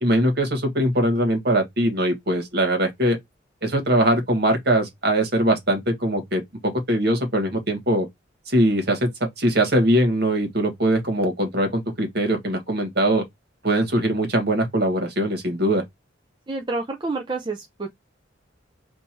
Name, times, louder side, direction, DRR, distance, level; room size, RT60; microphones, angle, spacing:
voice 1, 0.0-3.2 3.6-8.1 8.5-9.1 9.4-13.2 13.6-15.8, right 1 dB, 55° right, 1.6 m, -21 dB
voice 2, 16.5-17.9, right 3 dB, 25° right, 0.5 m, -28 dB
3.6 x 2.7 x 4.4 m
head